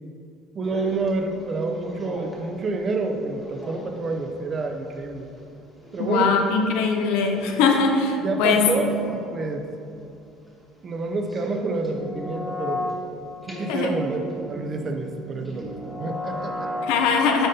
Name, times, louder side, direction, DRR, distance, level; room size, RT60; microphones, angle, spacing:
sound 1, 0.6-2.5 2.9-3.0 3.4-5.5 5.8-6.4 7.3-7.9 8.4-9.4 11.2-13.0 13.4-16.9, left 1 dB, ahead, 1.2 m, -36 dB
voice 1, 0.6-5.3 5.9-6.3 8.2-9.6 10.8-12.9 13.5-16.7, right 3 dB, 30° right, 4 dB, 0.5 m, -28 dB
voice 2, 6.0-8.7 13.7-13.9 16.8-17.5, left 5 dB, 85° left, 3 dB, 0.7 m, -21 dB
8.8 x 5.2 x 2.8 m, 2.5 s
cardioid pair, 155°, 0 cm